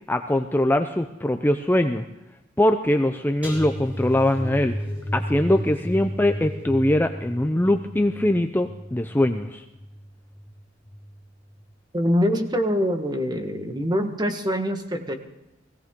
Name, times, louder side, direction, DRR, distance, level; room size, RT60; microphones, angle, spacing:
voice 1, 0.1-2.1 2.6-4.8 5.1-9.6, left 1 dB, 10° left, 6 dB, 0.6 m, -22 dB
sound 1, 3.4-10.5 10.8-11.2 11.5-11.6, equal, 5° right, 4.0 m, -33 dB
voice 2, 11.9-15.1, equal, 20° right, 5 dB, 1.5 m, -24 dB
18.5 x 16.5 x 3.8 m, 0.96 s
head